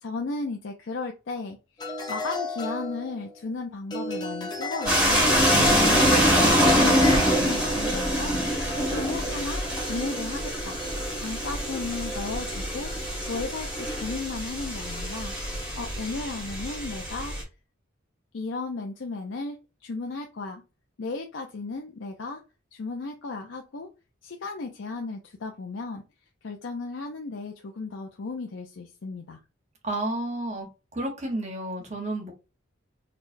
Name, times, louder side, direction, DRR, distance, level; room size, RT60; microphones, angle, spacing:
voice 1, 0.0-1.6 2.1-5.3 5.8-8.4 8.7-10.8 11.2-12.9 13.3-15.3 15.8-17.3 18.3-19.6 19.8-20.6 21.0-22.4 22.7-23.9 24.2-26.0 26.4-29.4, left 3 dB, 70° left, 2 dB, 0.5 m, -35 dB
sound 1, 1.8-3.5 3.9-7.9, left 3 dB, 20° left, 0.7 m, -33 dB
sound 2, 4.9-17.4, equal, 5° right, 1.7 m, -25 dB
voice 2, 5.5-6.1 29.8-30.7 30.9-32.3, right 2 dB, 35° right, 2 dB, 1.1 m, -31 dB
Crackle, 5.9-11.7, right 1 dB, 70° right, 1.1 m, -38 dB
4.2 x 3.2 x 2.6 m, 0.29 s
head